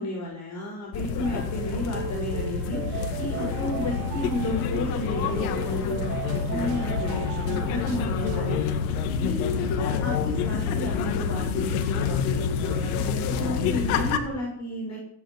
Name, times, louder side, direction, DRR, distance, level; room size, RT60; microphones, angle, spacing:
voice 1, 0.0-15.0, left 1 dB, 40° left, -1 dB, 6.6 m, -33 dB
sound 1, 0.9-14.2, left 6 dB, 90° left, 2.2 m, -28 dB
sound 2, 1.2-8.6, right 8 dB, 55° right, 2.5 m, -36 dB
16.0 x 10.0 x 8.3 m, 0.67 s
supercardioid pair, 115°, 43 cm